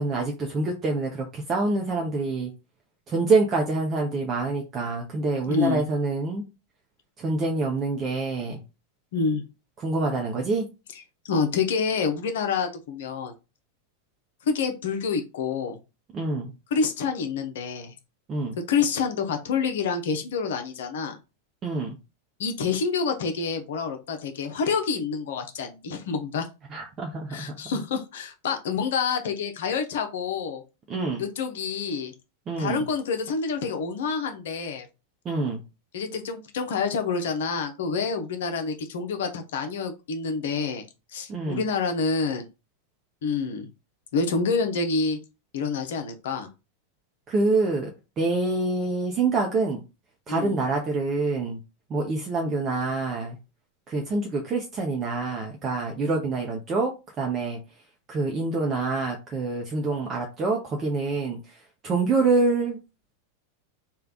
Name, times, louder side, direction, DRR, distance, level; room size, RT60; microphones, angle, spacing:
voice 1, 0.0-2.5 3.1-6.4 7.2-8.6 9.8-10.7 16.1-16.5 18.3-18.6 21.6-22.0 26.7-27.5 30.9-31.2 32.5-32.8 35.2-35.6 41.3-41.6 47.3-47.9 48.2-49.8 50.3-51.6 51.9-53.4 53.9-57.6 58.1-61.4 61.8-62.8, right 3 dB, 25° right, 0 dB, 0.7 m, -26 dB
voice 2, 5.4-5.8 9.1-9.4 11.2-13.3 14.5-15.8 16.7-17.9 18.7-21.2 22.4-26.5 27.3-30.6 31.2-32.1 32.6-34.9 35.9-40.9 41.1-42.5 43.2-43.7 44.1-45.2 45.5-46.5 50.3-50.6, left 5 dB, 55° left, 5 dB, 0.7 m, -27 dB
3.3 x 2.4 x 3.8 m, 0.27 s
figure-of-eight pair, 90°, 0 cm